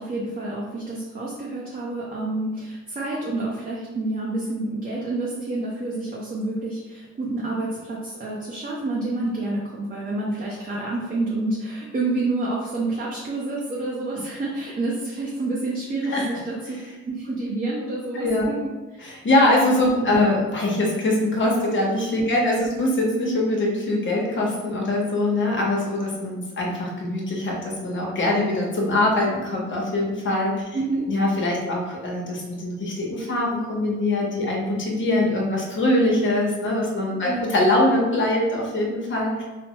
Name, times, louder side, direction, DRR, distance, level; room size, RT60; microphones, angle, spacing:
voice 1, 0.0-16.8 17.1-19.1 20.0-20.1 22.3-22.6 30.7-31.0 37.3-37.5, right 2 dB, 30° right, -5 dB, 0.6 m, -28 dB
voice 2, 16.0-16.4 18.1-18.5 19.0-30.5 31.1-39.4, left 1 dB, 40° left, -2 dB, 0.9 m, -23 dB
3.2 x 2.0 x 2.9 m, 1.2 s
cardioid pair, 90°, 30 cm